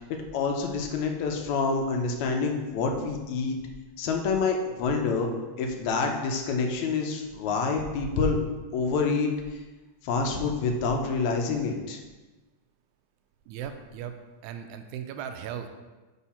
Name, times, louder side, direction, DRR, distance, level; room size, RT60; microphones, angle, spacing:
voice 1, 0.1-3.6 4.0-5.3 5.6-8.4 8.7-9.3 10.0-12.0, left 4 dB, 80° left, 3 dB, 2.1 m, -27 dB
voice 2, 13.5-14.1 14.4-15.7, right 9 dB, 90° right, 7 dB, 2.0 m, -37 dB
5.6 x 5.2 x 4.2 m, 1.2 s
omnidirectional pair, 3.3 m